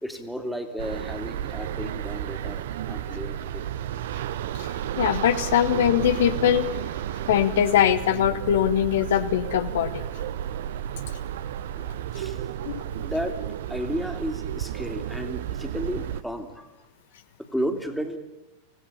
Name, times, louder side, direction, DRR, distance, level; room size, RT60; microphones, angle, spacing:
voice 1, 0.0-3.6 12.1-12.4 13.0-13.4 13.7-16.7 17.4-18.2, equal, ahead, 6 dB, 2.7 m, -33 dB
sound 1, 0.8-16.2, right 10 dB, 55° right, 0.8 m, -32 dB
voice 2, 4.6-6.7 7.3-9.9 12.6-12.8, left 10 dB, 60° left, 10 dB, 1.0 m, -22 dB
26.5 x 16.5 x 8.6 m, 1.0 s
figure-of-eight pair, 90°, 0 cm